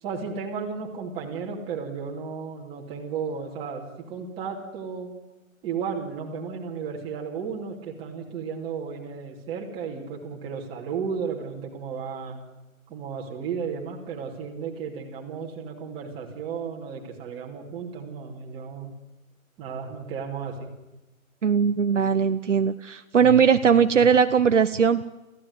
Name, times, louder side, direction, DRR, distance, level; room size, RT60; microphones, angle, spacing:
voice 1, 0.0-5.1 5.6-12.4 12.9-18.9 19.6-20.7, right 6 dB, 10° right, -1 dB, 2.6 m, -34 dB
voice 2, 21.4-25.0, right 7 dB, 60° right, 9 dB, 1.0 m, -19 dB
25.5 x 15.5 x 9.6 m, 1.0 s
hypercardioid pair, 160°, 42 cm